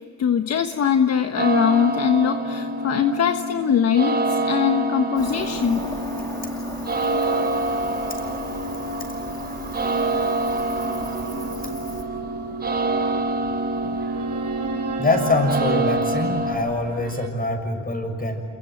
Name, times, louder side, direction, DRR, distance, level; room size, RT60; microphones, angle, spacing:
voice 1, 0.2-5.9, left 8 dB, 55° left, 7 dB, 1.3 m, -21 dB
sound 1, 1.4-16.6, right 2 dB, 30° right, 6.1 m, -26 dB
Cricket, 5.2-12.0, equal, 10° left, 7.6 m, -38 dB
sound 2, 7.2-17.3, right 5 dB, 50° right, 3.0 m, -34 dB
voice 2, 15.0-18.5, left 2 dB, 30° left, 5 dB, 6.6 m, -24 dB
28.0 x 23.0 x 9.2 m, 2.4 s
cardioid pair, 90°, 30 cm